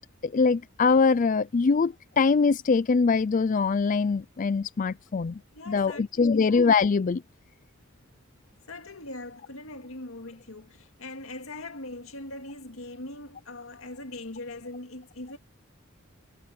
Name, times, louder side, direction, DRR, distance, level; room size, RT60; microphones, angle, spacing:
voice 1, 0.2-5.4 5.7-7.2, left 4 dB, 40° left, 0.4 m, -23 dB
voice 2, 5.5-6.5 8.7-15.4, left 2 dB, 80° left, 2.1 m, -41 dB
head